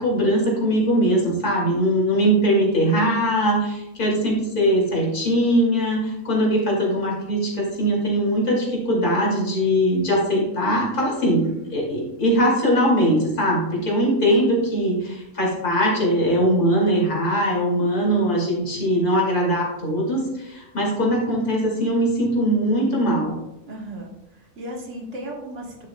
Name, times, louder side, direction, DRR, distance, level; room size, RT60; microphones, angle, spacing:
voice 1, 0.0-23.3, equal, 90° left, -3 dB, 3.0 m, -21 dB
voice 2, 13.8-14.1 23.7-25.9, right 1 dB, 55° right, -1 dB, 1.8 m, -36 dB
11.0 x 7.3 x 2.2 m, 0.88 s
omnidirectional pair, 1.5 m